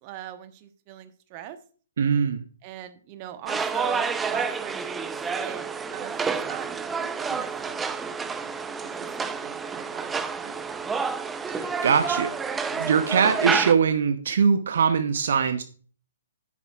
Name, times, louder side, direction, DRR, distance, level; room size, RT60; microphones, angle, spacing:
voice 1, 0.0-1.6 2.6-5.6 5.9-6.7 7.0-7.7 8.0-10.8, right 10 dB, 30° right, 9 dB, 1.1 m, -40 dB
voice 2, 2.0-2.4 11.5-15.6, right 6 dB, 55° right, 9 dB, 0.9 m, -22 dB
sound 1, 3.5-13.7, right 5 dB, 10° right, 0.6 m, -29 dB
11.0 x 9.2 x 2.4 m, 0.41 s
figure-of-eight pair, 120°, 0 cm